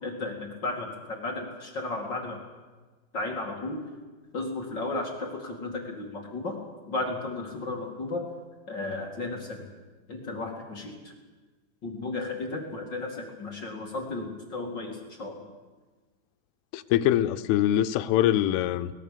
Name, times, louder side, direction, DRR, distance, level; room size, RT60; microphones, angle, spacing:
voice 1, 0.0-2.4 3.1-3.8 4.3-6.6 6.9-8.2 8.7-9.6 10.1-11.0 11.8-15.4, left 2 dB, 35° left, 1 dB, 1.9 m, -34 dB
voice 2, 16.7-18.9, left 12 dB, 90° left, 12 dB, 3.3 m, -23 dB
22.5 x 19.0 x 6.8 m, 1.3 s
omnidirectional pair, 5.5 m